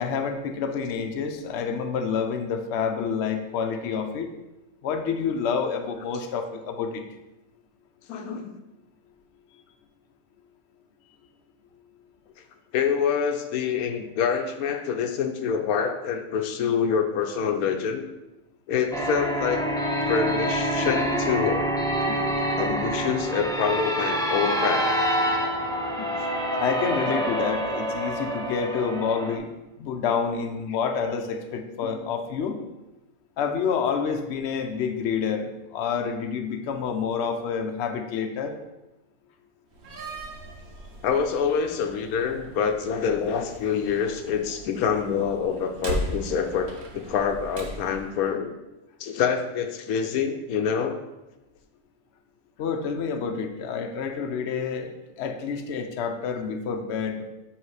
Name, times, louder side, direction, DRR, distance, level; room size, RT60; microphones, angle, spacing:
voice 1, 0.0-4.3 4.8-7.0 26.6-32.6 33.4-38.5 52.6-54.9 55.2-57.3, left 6 dB, 60° left, 5 dB, 0.9 m, -28 dB
voice 2, 8.1-8.5 12.7-18.0 18.7-19.6 20.0-21.6 22.1-22.2 22.6-24.9 26.0-26.1 27.2-27.3 31.8-32.0 41.0-48.6 49.0-51.0, left 7 dB, 85° left, 6 dB, 1.1 m, -26 dB
sound 1, 18.9-29.4, equal, 5° left, 0.3 m, -26 dB
Slam, 39.7-48.1, equal, 85° right, 1.4 m, -38 dB
7.6 x 3.2 x 4.7 m, 1.0 s
omnidirectional pair, 1.5 m